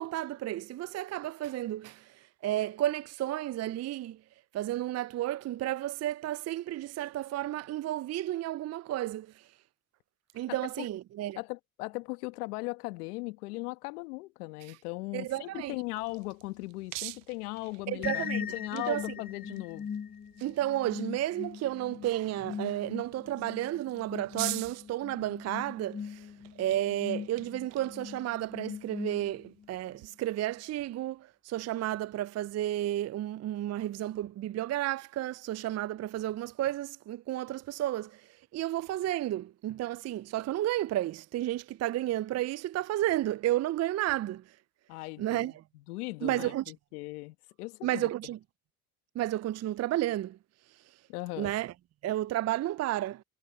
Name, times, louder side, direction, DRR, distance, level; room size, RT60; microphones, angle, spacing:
voice 1, 0.0-4.2 4.5-9.5 10.3-11.4 14.7-14.8 15.1-15.7 17.9-19.0 20.4-26.3 26.6-44.6 45.2-45.6 46.2-46.6 47.8-48.4 49.1-50.4 51.4-51.7 52.0-53.2, right 14 dB, 35° right, 0.5 m, -32 dB
voice 2, 11.4-19.9 44.9-45.5 45.9-48.1 51.1-51.5, left 23 dB, 80° left, 1.5 m, -38 dB
sound 1, 15.6-30.1, right 26 dB, 70° right, 1.0 m, -46 dB
sound 2, 18.0-29.7, left 7 dB, 20° left, 0.5 m, -40 dB
hypercardioid pair, 60°, 45 cm